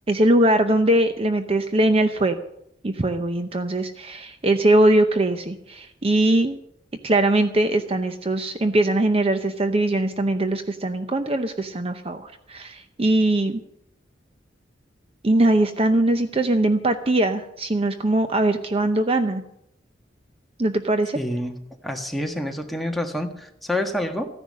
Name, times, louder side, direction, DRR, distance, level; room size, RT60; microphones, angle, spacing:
voice 1, 0.1-2.4 2.8-6.6 7.0-13.6 15.2-19.4 20.6-21.2, right 1 dB, 35° right, 8 dB, 0.7 m, -21 dB
voice 2, 21.1-21.6 21.8-24.3, left 1 dB, ahead, 2 dB, 1.5 m, -27 dB
15.0 x 10.5 x 6.5 m, 0.76 s
head